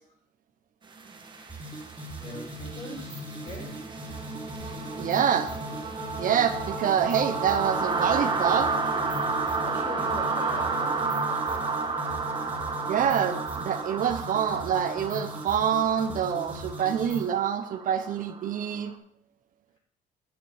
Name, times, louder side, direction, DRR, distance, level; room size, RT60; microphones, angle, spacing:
sound 1, 1.0-18.8, right 4 dB, 30° right, 1.3 m, -32 dB
sound 2, 1.5-17.3, equal, 10° right, 2.6 m, -40 dB
voice 1, 2.2-3.8 9.3-11.9, left 1 dB, 40° left, -1 dB, 4.0 m, -42 dB
voice 2, 5.0-5.5 6.2-8.7 12.9-18.9, right 8 dB, 55° right, 8 dB, 0.8 m, -26 dB
9.2 x 6.7 x 5.0 m, 0.66 s
cardioid pair, 110°, 17 cm